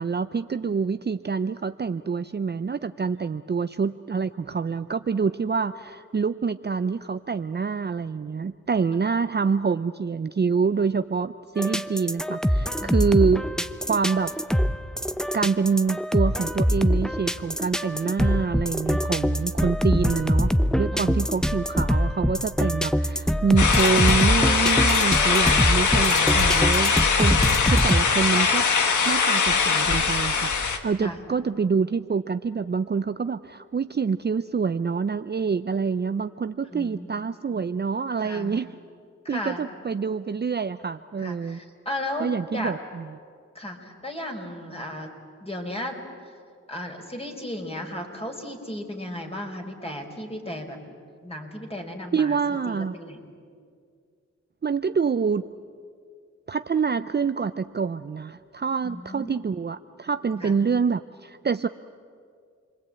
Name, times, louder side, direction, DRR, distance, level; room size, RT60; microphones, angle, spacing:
voice 1, 0.0-13.5 13.9-14.3 15.3-20.5 20.8-26.9 27.2-27.4 27.6-28.6 29.0-38.7 39.3-41.6 42.2-43.1 52.1-52.9 54.6-55.5 56.5-61.7, right 5 dB, 35° right, 11 dB, 0.6 m, -26 dB
sound 1, 11.6-28.0, equal, ahead, 0.8 m, -24 dB
voice 2, 20.9-21.3 29.5-29.9 31.0-31.2 36.6-37.1 38.2-38.5 39.2-39.6 41.2-42.7 43.5-45.1 45.4-46.0 46.7-50.8 51.2-52.4 52.7-53.2 58.8-59.4 60.4-60.6, left 1 dB, 20° left, 2 dB, 4.6 m, -35 dB
sound 2, 23.6-30.8, left 5 dB, 85° left, 1.6 m, -21 dB
28.5 x 22.0 x 8.7 m, 2.2 s
cardioid pair, 65°, 29 cm